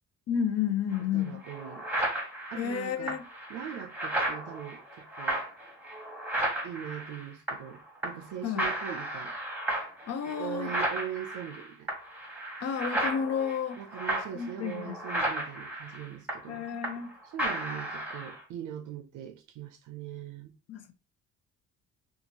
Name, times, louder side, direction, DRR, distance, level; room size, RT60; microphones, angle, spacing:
voice 1, 0.3-1.4 2.6-3.2 8.4-8.7 10.1-10.7 12.6-13.8 14.3-15.0 16.5-17.2 20.7-20.9, left 8 dB, 55° left, 0.6 m, -31 dB
sound 1, 0.9-1.0 1.4-7.8 8.0-8.3 8.6-17.1 17.4-18.4, right 1 dB, 5° right, 1.1 m, -34 dB
voice 2, 1.0-1.9 2.5-3.2 3.5-5.5 6.6-9.4 10.2-11.9 13.8-16.6 17.3-20.5, right 9 dB, 80° right, 0.5 m, -41 dB
2.7 x 2.4 x 2.8 m
cardioid pair, 90°, 30 cm